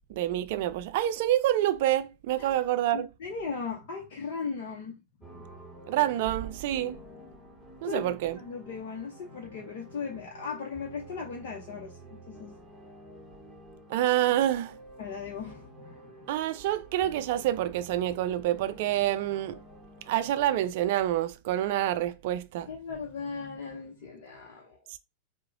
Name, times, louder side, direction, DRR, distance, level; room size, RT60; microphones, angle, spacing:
voice 1, 0.1-3.1 5.9-7.0 7.8-8.4 13.9-14.8 16.3-19.6 20.1-22.7 24.9-25.0, right 13 dB, 50° right, 0.4 m, -27 dB
voice 2, 2.9-5.0 5.3-5.6 7.8-12.5 15.0-16.3 22.7-24.8, left 5 dB, 50° left, 0.8 m, -38 dB
sound 1, 5.2-20.7, right 1 dB, ahead, 1.2 m, -50 dB
4.8 x 2.2 x 3.5 m
figure-of-eight pair, 90°, 0 cm